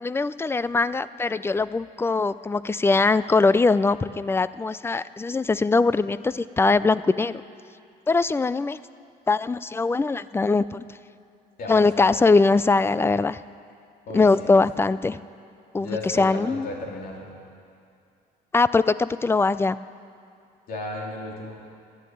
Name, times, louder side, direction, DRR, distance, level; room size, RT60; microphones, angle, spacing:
voice 1, 0.0-7.4 8.1-8.8 9.3-10.8 11.7-13.4 14.1-15.2 15.7-15.9 16.2-16.7 18.5-19.8, left 3 dB, 15° left, 16 dB, 0.4 m, -21 dB
voice 2, 11.6-12.1 14.1-14.5 15.8-17.3 20.7-21.6, left 2 dB, 60° left, -1 dB, 3.4 m, -34 dB
13.5 x 11.5 x 9.2 m, 2.4 s
cardioid pair, 110°, 17 cm